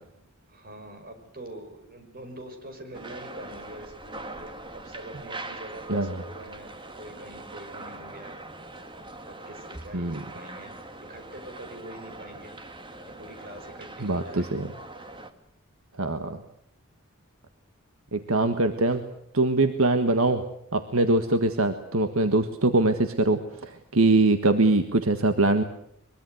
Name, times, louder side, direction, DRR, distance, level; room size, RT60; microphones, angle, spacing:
voice 1, 0.5-8.4 9.3-10.8 11.1-12.5 13.2-14.5 21.3-21.6, right 1 dB, 45° right, 6 dB, 5.7 m, -44 dB
sound 1, 2.9-15.3, right 2 dB, 25° right, 2.1 m, -42 dB
voice 2, 5.9-6.2 9.9-10.2 14.0-14.7 16.0-16.4 18.1-19.1 19.3-20.5 20.7-25.6, right 2 dB, 75° right, 8 dB, 1.6 m, -23 dB
23.5 x 23.0 x 8.0 m, 0.71 s
head